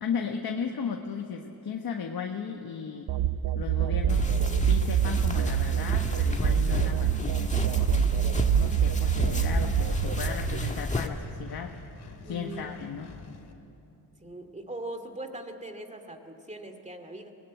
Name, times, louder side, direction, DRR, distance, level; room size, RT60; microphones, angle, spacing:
voice 1, 0.0-3.1 3.5-4.3 4.6-7.9 8.5-11.7 12.2-13.1, left 6 dB, 65° left, 3 dB, 1.4 m, -35 dB
sound 1, 3.1-10.7, right 9 dB, 90° right, 0.8 m, -26 dB
sound 2, 4.1-11.1, left 2 dB, 20° left, 1.6 m, -32 dB
Engine, 8.3-13.5, left 4 dB, 85° left, 2.4 m, -48 dB
voice 2, 12.2-12.8 14.2-17.3, right 1 dB, 20° right, 7 dB, 2.4 m, -40 dB
21.5 x 19.0 x 9.5 m, 2.8 s
cardioid pair, 95°, 39 cm